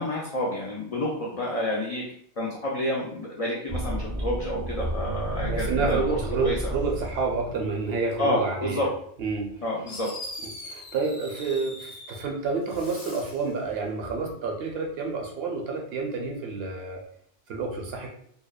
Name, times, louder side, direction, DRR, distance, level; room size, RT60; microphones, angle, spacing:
voice 1, 0.0-2.0 2.4-6.7 8.2-8.9 9.6-10.1, left 1 dB, 60° left, -4 dB, 0.3 m, -29 dB
sound 1, 3.7-8.0, right 1 dB, 40° right, 0.5 m, -31 dB
voice 2, 5.5-8.9 9.2-9.5 10.4-17.0 17.5-18.1, right 4 dB, 70° right, 1 dB, 0.8 m, -29 dB
Fireworks, 9.9-12.3 12.6-13.5, left 1 dB, 40° left, 0.9 m, -41 dB
2.7 x 2.0 x 2.3 m, 0.63 s
omnidirectional pair, 1.1 m